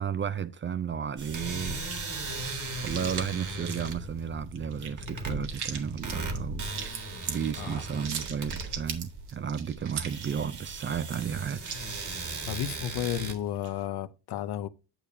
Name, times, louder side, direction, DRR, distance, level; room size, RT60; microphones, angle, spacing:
voice 1, 0.0-1.8 2.2-2.4 2.8-6.6 7.3-11.6, right 7 dB, 30° right, 0.4 m, -33 dB
sound 1, 1.2-13.3, right 2 dB, 45° right, 1.8 m, -38 dB
Blood Drips Tomato, 1.8-13.8, right 7 dB, 70° right, 1.4 m, -41 dB
voice 2, 12.5-14.7, left 11 dB, 70° left, 0.8 m, -32 dB
8.9 x 6.6 x 2.7 m
cardioid pair, 80°, 40 cm